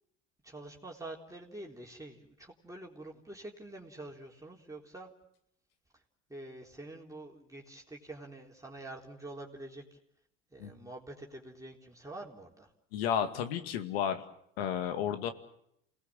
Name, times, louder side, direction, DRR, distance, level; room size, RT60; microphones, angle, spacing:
voice 1, 0.4-5.1 5.9-6.0 6.3-10.0 10.5-12.7, right 2 dB, 10° right, -1 dB, 3.9 m, -47 dB
voice 2, 12.9-14.2 14.6-15.3, left 9 dB, 90° left, 8 dB, 2.2 m, -32 dB
28.5 x 19.0 x 7.7 m, 0.75 s
supercardioid pair, 85°, 29 cm